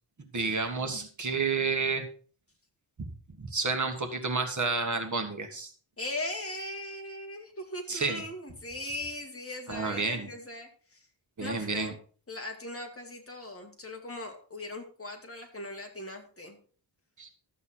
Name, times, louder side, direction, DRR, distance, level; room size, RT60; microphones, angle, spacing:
voice 1, 0.3-2.0 3.0-3.1 3.4-5.7 7.9-8.2 9.7-10.3 11.4-11.9 17.2-17.3, right 4 dB, 40° right, 5 dB, 1.6 m, -30 dB
voice 2, 6.0-11.1 11.4-12.0 12.3-16.6, left 1 dB, 30° left, 3 dB, 2.1 m, -39 dB
12.5 x 8.2 x 4.4 m, 0.41 s
wide cardioid pair, 155°, 47 cm